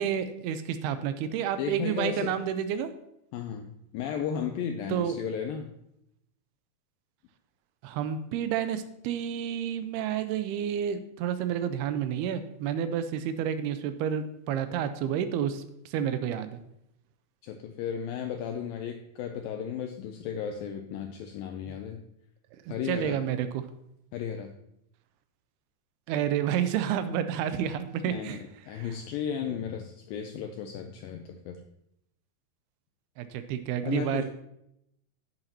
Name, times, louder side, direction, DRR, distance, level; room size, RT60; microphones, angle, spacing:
voice 1, 0.0-2.9 4.9-5.1 7.8-16.6 22.7-23.6 26.1-28.4 28.7-28.9 33.2-34.2, right 9 dB, 85° right, 11 dB, 2.5 m, -30 dB
voice 2, 1.6-2.4 3.3-5.8 17.4-22.0 22.7-23.2 24.1-24.5 28.1-31.6 33.8-34.2, left 8 dB, 90° left, 6 dB, 2.0 m, -34 dB
11.0 x 8.1 x 2.9 m, 0.78 s
omnidirectional pair, 4.7 m